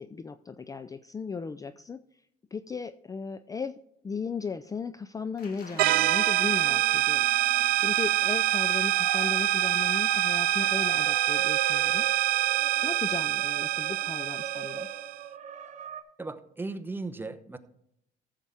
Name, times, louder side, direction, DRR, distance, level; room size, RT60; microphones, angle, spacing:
voice 1, 0.0-2.0 2.5-7.3 7.7-12.1 12.8-14.9, left 5 dB, 20° left, 12 dB, 0.4 m, -36 dB
Applause, 5.4-12.5 12.9-13.0, left 4 dB, 60° left, 2.2 m, -49 dB
sound 1, 5.7-16.0, right 8 dB, 45° right, 1.2 m, -43 dB
sound 2, 5.8-15.2, right 14 dB, 65° right, 0.5 m, -25 dB
voice 2, 16.2-17.6, right 3 dB, 10° right, 10 dB, 0.8 m, -36 dB
14.5 x 7.3 x 3.5 m, 0.75 s
cardioid pair, 110°, 17 cm